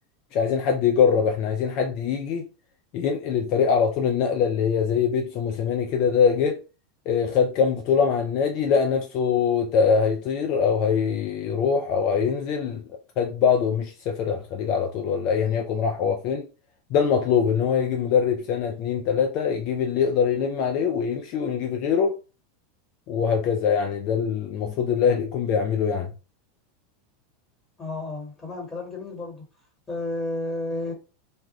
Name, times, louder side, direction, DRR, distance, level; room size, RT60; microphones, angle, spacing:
voice 1, 0.3-2.4 2.9-6.6 7.1-12.8 13.2-16.5 16.9-22.2 23.1-26.1, left 6 dB, 45° left, 0.4 m, -23 dB
voice 2, 27.8-29.4 29.9-30.9, left 2 dB, 10° left, 1.4 m, -31 dB
2.3 x 2.1 x 3.0 m
figure-of-eight pair, 85°, 0 cm